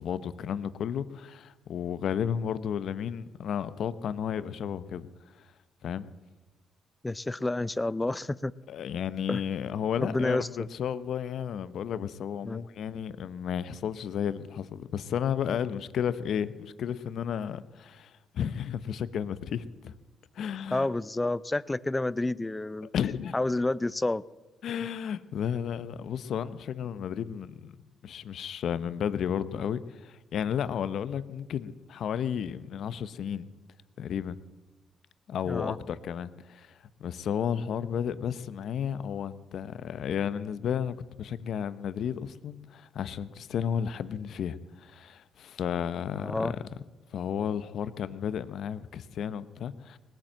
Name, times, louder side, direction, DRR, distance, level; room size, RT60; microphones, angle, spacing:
voice 1, 0.0-5.1 5.8-6.1 8.7-19.9 20.3-20.9 22.9-23.4 24.6-27.8 28.0-33.5 34.0-34.4 35.3-46.6 47.1-50.0, left 8 dB, 65° left, 0.7 m, -33 dB
voice 2, 7.0-8.5 9.3-9.4 10.0-10.5 12.4-12.7 20.7-22.9 23.3-24.2 35.4-35.8 46.2-46.5, left 2 dB, 15° left, 0.4 m, -29 dB
19.5 x 9.0 x 7.4 m
cardioid pair, 90°, 0 cm